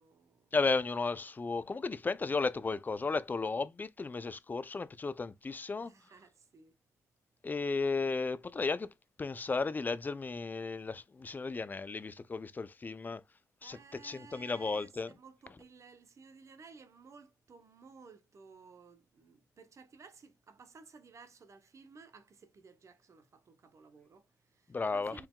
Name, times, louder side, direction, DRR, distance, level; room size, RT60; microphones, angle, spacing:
voice 1, 0.0-0.5 5.8-6.7 13.6-25.3, right 5 dB, 50° right, 0.9 m, -56 dB
voice 2, 0.5-5.9 7.4-8.9 9.2-13.2 13.6-15.1 24.7-25.2, left 4 dB, 30° left, 0.5 m, -34 dB
4.6 x 3.4 x 2.3 m
cardioid pair, 65°, 6 cm